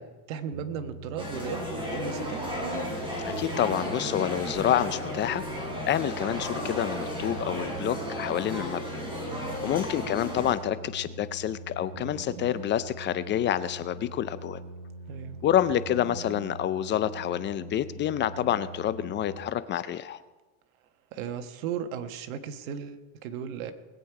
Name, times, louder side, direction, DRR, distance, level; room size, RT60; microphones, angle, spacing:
voice 1, 0.0-2.4 9.3-9.6 15.1-15.4 21.1-23.7, right 8 dB, 75° right, 8 dB, 1.4 m, -36 dB
sound 1, 0.5-19.4, right 3 dB, 50° right, 1.6 m, -42 dB
sound 2, 1.2-10.5, left 1 dB, 10° right, 3.8 m, -34 dB
voice 2, 3.2-5.4 5.9-8.8 9.6-14.6 15.4-20.2, left 11 dB, 30° left, 15 dB, 0.4 m, -28 dB
20.5 x 8.4 x 4.8 m, 1.2 s
supercardioid pair, 130°, 41 cm